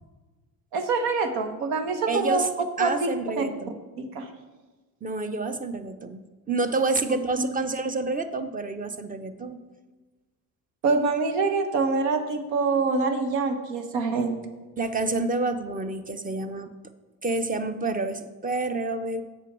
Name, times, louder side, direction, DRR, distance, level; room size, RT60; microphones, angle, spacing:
voice 1, 0.7-2.4 2.8-3.4 4.1-4.3 7.4-7.5 10.8-14.4, right 4 dB, 65° right, 7 dB, 1.5 m, -25 dB
voice 2, 2.1-2.5 2.8-3.7 5.0-6.2 6.5-9.6 14.8-16.7 17.2-19.2, right 3 dB, 20° right, 10 dB, 0.8 m, -28 dB
8.2 x 6.3 x 6.1 m, 1.2 s
hypercardioid pair, 65°, 46 cm